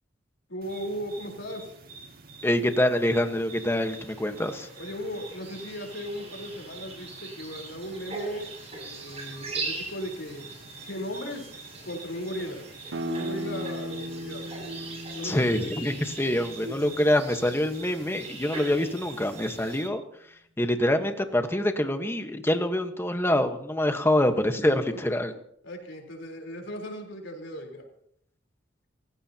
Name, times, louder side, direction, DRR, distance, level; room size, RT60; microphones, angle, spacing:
voice 1, 0.5-1.7 4.8-10.5 10.8-11.5 11.8-12.7 13.0-14.5 15.1-15.6 25.6-27.9, equal, 75° left, 2 dB, 4.0 m, -37 dB
sound 1, 0.6-19.9, right 4 dB, 50° right, 2.2 m, -47 dB
voice 2, 2.4-4.7 15.2-20.0 20.6-25.3, left 1 dB, 10° left, 7 dB, 1.3 m, -25 dB
sound 2, 3.0-19.8, right 3 dB, 35° right, 6.8 m, -42 dB
sound 3, 12.9-18.3, equal, 80° right, 0.9 m, -38 dB
29.5 x 15.5 x 2.9 m, 0.69 s
head